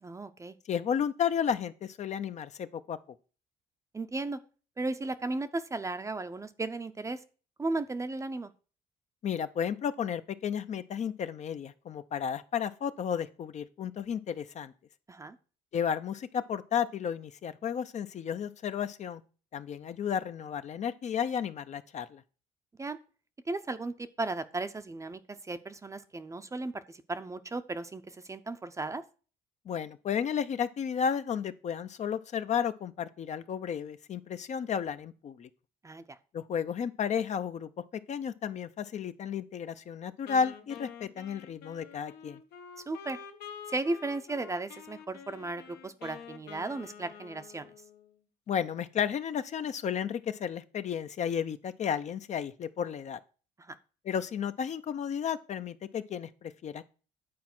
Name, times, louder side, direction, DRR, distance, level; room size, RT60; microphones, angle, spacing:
voice 1, 0.0-0.6 3.9-4.4 4.8-7.2 7.6-8.5 15.1-15.4 22.8-23.0 23.5-29.0 35.8-36.2 42.9-43.2 43.7-47.7 53.6-53.8, right 2 dB, 20° right, 0.6 m, -35 dB
voice 2, 0.7-3.0 9.2-14.7 15.7-19.2 19.5-22.2 29.7-35.5 36.3-37.7 38.1-42.4 48.5-53.2 54.0-56.8, left 8 dB, 45° left, 0.6 m, -33 dB
Wind instrument woodwind instrument, 40.3-48.2, left 7 dB, 75° left, 1.1 m, -48 dB
9.5 x 4.3 x 6.0 m
cardioid pair, 110°, 17 cm